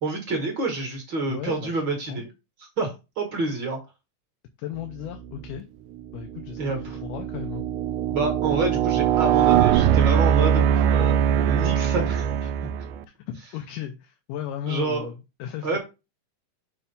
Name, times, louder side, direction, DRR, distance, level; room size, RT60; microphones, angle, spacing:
voice 1, 0.0-2.3 2.6-3.8 6.6-7.0 8.1-10.6 10.9-11.2 11.5-12.4 14.7-15.1 15.6-15.8, right 3 dB, 45° right, 2 dB, 1.8 m, -28 dB
voice 2, 1.3-1.8 2.1-2.2 4.6-5.7 6.1-7.6 8.4-8.6 10.6-10.8 12.4-12.5 13.1-15.8, left 11 dB, 80° left, 4 dB, 2.2 m, -36 dB
sound 1, 5.3-5.6 6.2-13.0, right 9 dB, 80° right, 1.8 m, -22 dB
7.0 x 3.2 x 5.3 m, 0.27 s
omnidirectional pair, 3.8 m